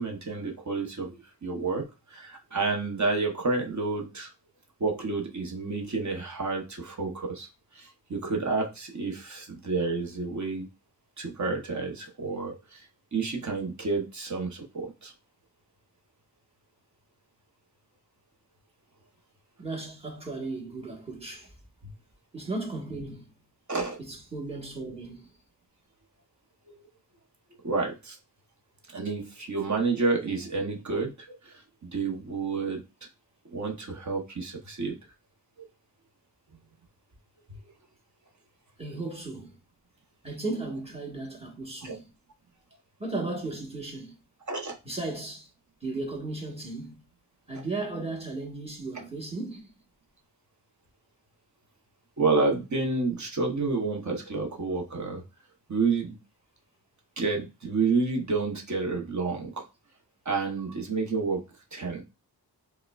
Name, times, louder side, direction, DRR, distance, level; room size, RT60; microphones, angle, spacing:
voice 1, 0.0-4.3 4.8-7.5 7.7-10.7 11.2-15.1 23.7-24.0 26.7-26.8 27.6-28.2 28.9-32.8 33.5-35.0 37.5-37.6 41.8-42.0 44.5-44.8 52.2-55.2 55.7-56.2 57.2-59.6 60.2-61.4 61.7-62.0, right 4 dB, 45° right, 0.8 m, -30 dB
voice 2, 19.6-21.5 22.3-23.3 24.1-25.3 38.8-39.6 40.2-42.0 43.0-44.1 44.8-45.5 45.8-47.0 47.5-49.7, right 2 dB, 15° right, 1.1 m, -35 dB
4.7 x 2.2 x 2.3 m
wide cardioid pair, 70°, 40 cm